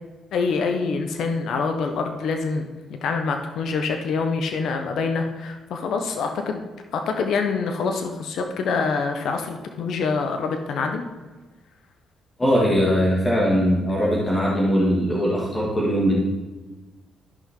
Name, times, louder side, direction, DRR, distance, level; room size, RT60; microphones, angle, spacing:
voice 1, 0.3-2.6 2.9-11.0, left 4 dB, 70° left, 5 dB, 1.0 m, -25 dB
voice 2, 12.4-16.2, equal, 20° left, -5 dB, 2.1 m, -20 dB
13.0 x 5.6 x 3.8 m, 1.2 s
cardioid pair, 90°, 0 cm